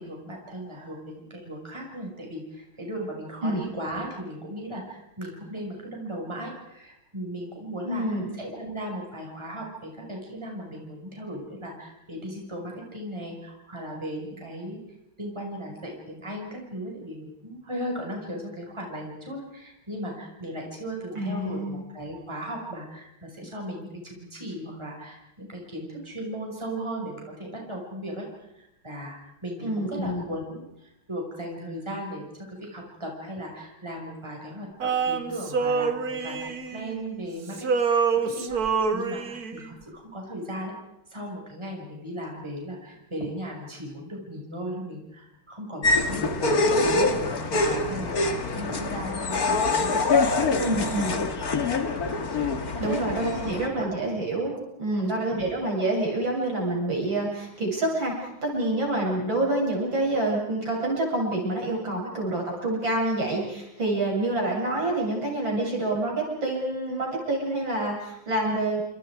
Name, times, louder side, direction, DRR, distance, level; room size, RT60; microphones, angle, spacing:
voice 1, 0.0-14.8 15.2-28.3 28.5-40.7 41.1-51.2 51.5-51.6 52.7-53.0 53.4-53.9 55.0-55.2, equal, 15° right, 0 dB, 5.9 m, -37 dB
voice 2, 7.8-8.3 21.1-21.8 29.6-30.2 50.6-51.1 52.8-68.8, right 2 dB, 70° right, -2 dB, 8.5 m, -27 dB
Male singing, 34.8-37.3 37.5-39.7, right 5 dB, 50° right, 1.9 m, -26 dB
sound 1, 45.8-53.7, left 3 dB, 50° left, 2.3 m, -25 dB
29.5 x 27.0 x 4.9 m, 0.84 s
omnidirectional pair, 2.2 m